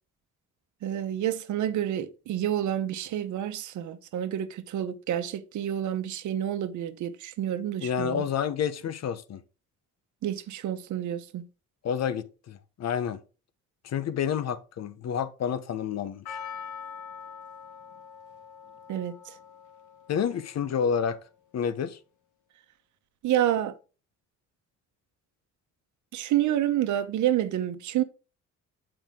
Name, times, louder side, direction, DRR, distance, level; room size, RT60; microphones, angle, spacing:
voice 1, 0.8-8.2 10.2-11.5 18.9-19.2 23.2-23.7 26.1-28.0, right 11 dB, 75° right, 0.9 m, -29 dB
voice 2, 7.8-9.4 11.8-13.2 13.8-16.4 20.1-21.2 21.5-22.0, left 7 dB, 60° left, 0.9 m, -29 dB
Percussion, 16.3-20.6 20.9-21.0, left 7 dB, 75° left, 1.5 m, -43 dB
9.2 x 4.9 x 3.7 m
cardioid pair, 90°, 30 cm